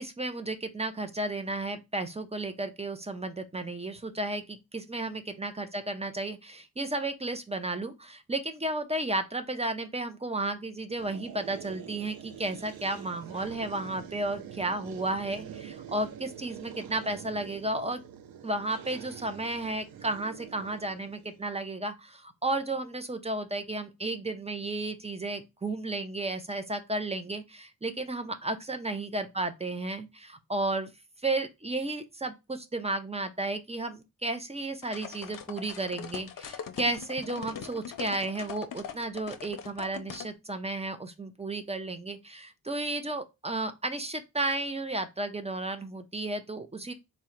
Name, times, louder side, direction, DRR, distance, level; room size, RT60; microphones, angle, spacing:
voice 1, 0.0-18.0 18.4-30.9 31.2-46.9, right 2 dB, 20° right, 0.4 m, -33 dB
sound 1, 11.0-21.4, right 9 dB, 75° right, 0.5 m, -45 dB
sound 2, 34.8-40.3, left 8 dB, 65° left, 0.6 m, -41 dB
3.6 x 2.1 x 4.3 m
wide cardioid pair, 110°, 36 cm